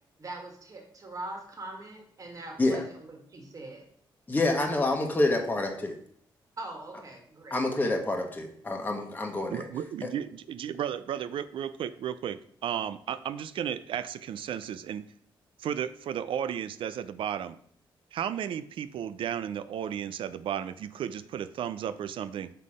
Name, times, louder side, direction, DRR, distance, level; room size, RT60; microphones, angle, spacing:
voice 1, 0.2-3.8 6.6-7.6, right 2 dB, 40° right, 1 dB, 1.7 m, -42 dB
voice 2, 4.3-6.0 7.5-9.6 10.0-10.1, left 2 dB, 20° left, 2 dB, 1.2 m, -27 dB
voice 3, 9.5-15.0 15.6-17.6 18.1-22.5, right 9 dB, 75° right, 14 dB, 0.4 m, -34 dB
5.6 x 4.0 x 4.9 m, 0.62 s
cardioid pair, 85°, 9 cm